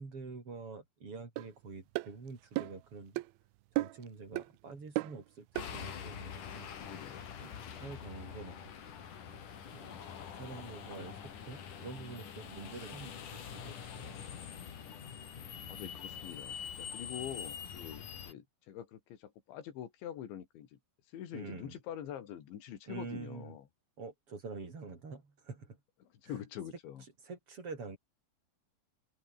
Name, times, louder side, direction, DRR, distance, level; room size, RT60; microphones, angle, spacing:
voice 1, 0.0-3.2 3.8-6.7 7.4-7.5 7.8-8.7 9.3-9.4 9.7-10.0 10.3-11.2 11.5-14.2 21.3-21.8 22.9-23.6 24.0-25.8 26.2-26.3 27.2-28.0, right 4 dB, 30° right, 5.4 m, -46 dB
sound 1, 1.4-1.5 2.0-2.1 2.6-2.8 3.2-3.3 3.8-4.1 4.4-4.5 5.0-5.2 5.6-5.7, right 18 dB, 80° right, 2.2 m, -34 dB
sound 2, 5.5-18.3, left 8 dB, 50° left, 3.9 m, -45 dB
voice 2, 6.8-7.3 15.7-20.8 21.1-23.6 26.0-27.0, left 10 dB, 85° left, 5.0 m, -45 dB
open air
omnidirectional pair, 5.1 m